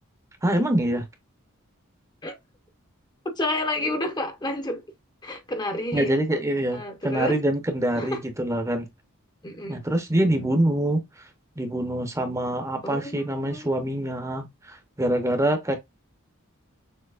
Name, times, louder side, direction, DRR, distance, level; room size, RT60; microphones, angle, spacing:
voice 1, 0.4-1.0 5.9-8.9 9.7-11.0 11.6-15.8, right 1 dB, 15° right, 0.8 m, -25 dB
voice 2, 3.2-4.9 5.2-6.4 6.7-7.4 7.9-8.2 9.4-9.9 10.2-10.5 12.8-13.7, left 1 dB, 20° left, 0.8 m, -30 dB
6.6 x 2.8 x 2.4 m
head